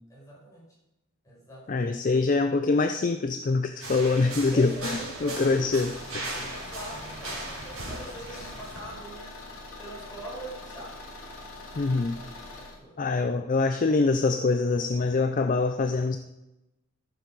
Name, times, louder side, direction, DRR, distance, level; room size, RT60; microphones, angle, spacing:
voice 1, 0.1-0.7 1.2-1.9 4.5-5.9 6.2-9.4 9.8-10.9 12.6-13.0, right 1 dB, 15° left, -6 dB, 4.8 m, -43 dB
voice 2, 1.7-6.5 11.8-12.2 13.0-16.2, left 3 dB, 40° left, 8 dB, 0.4 m, -25 dB
sound 1, 3.8-8.8, right 2 dB, 80° right, 3.5 m, -38 dB
Car / Engine, 5.7-12.8, left 2 dB, 80° left, 2.5 m, -43 dB
14.5 x 6.9 x 4.7 m, 0.95 s
head